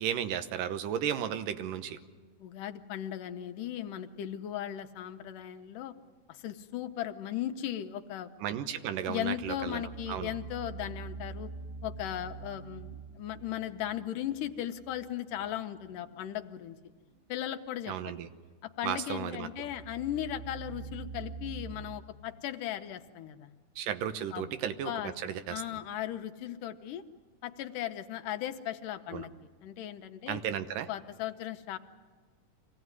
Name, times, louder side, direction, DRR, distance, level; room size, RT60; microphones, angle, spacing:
voice 1, 0.0-2.0 8.4-10.3 17.9-18.3 18.8-19.5 23.8-25.6 29.1-29.3 30.3-30.9, right 9 dB, 85° right, 10 dB, 2.6 m, -34 dB
voice 2, 2.4-5.9 6.3-8.3 9.1-11.5 11.8-16.8 17.3-18.1 18.6-23.5 24.3-24.5 24.9-27.0 27.4-29.3 29.6-30.4 30.9-31.8, left 12 dB, 85° left, 7 dB, 2.5 m, -37 dB
sound 1, 9.2-15.2 15.4-15.5 19.5-21.8, right 5 dB, 70° right, 3.3 m, -44 dB
24.5 x 16.5 x 9.6 m, 1.5 s
omnidirectional pair, 3.7 m